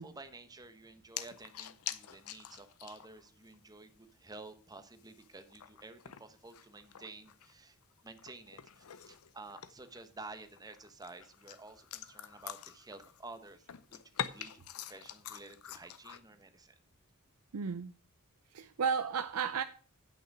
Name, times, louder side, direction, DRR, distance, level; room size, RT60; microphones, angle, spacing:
voice 1, 0.0-7.8 8.0-16.7, right 3 dB, 20° right, 1.0 m, -51 dB
sound 1, 1.2-3.3 3.5-3.6 4.1-4.2 4.8-7.5 7.8-10.0 10.4-13.4 13.6-16.2, left 10 dB, 80° left, 0.6 m, -45 dB
voice 2, 17.5-17.9 18.5-19.6, right 6 dB, 90° right, 0.5 m, -33 dB
9.0 x 5.9 x 6.0 m
head